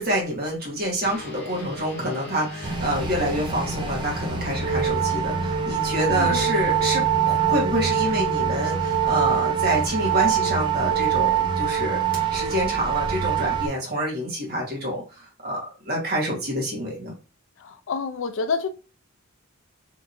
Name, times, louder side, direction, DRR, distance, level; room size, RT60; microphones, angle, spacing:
voice 1, 0.0-17.1, equal, 45° right, 1.2 m, -27 dB
sound 1, 1.0-10.8, left 3 dB, 30° left, 1.1 m, -36 dB
sound 2, 2.6-13.7, right 9 dB, 20° right, 0.3 m, -24 dB
voice 2, 6.1-6.4 17.6-18.7, left 4 dB, 60° left, 0.4 m, -28 dB
2.9 x 2.6 x 2.5 m
head